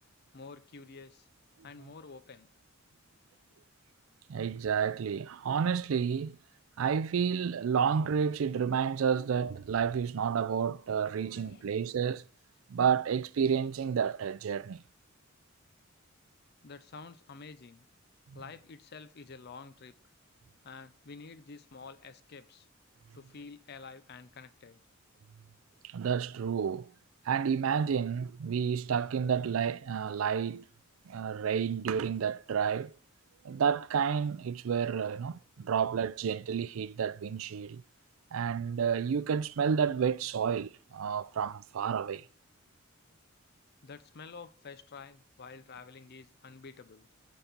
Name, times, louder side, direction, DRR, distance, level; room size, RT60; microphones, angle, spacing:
voice 1, 0.3-1.3 1.6-2.5 11.2-11.7 16.6-17.9 18.3-19.9 20.6-22.7 23.1-24.8 43.8-47.1, left 4 dB, 50° left, 0.6 m, -49 dB
voice 2, 4.3-6.4 6.8-12.2 12.7-14.8 18.3-18.4 25.9-26.9 27.3-30.6 31.1-32.9 33.4-37.8 38.3-42.2, right 7 dB, 80° right, 0.4 m, -30 dB
7.9 x 4.2 x 6.7 m
head